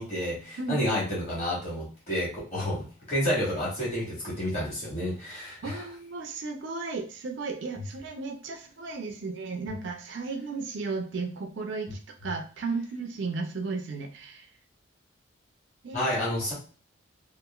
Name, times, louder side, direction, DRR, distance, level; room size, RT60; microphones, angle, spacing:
voice 1, 0.0-5.8 15.9-16.5, equal, 35° left, -6 dB, 1.4 m, -30 dB
voice 2, 5.6-14.5 15.8-16.1, right 4 dB, 60° right, 4 dB, 0.4 m, -34 dB
2.9 x 2.4 x 2.3 m, 0.38 s
head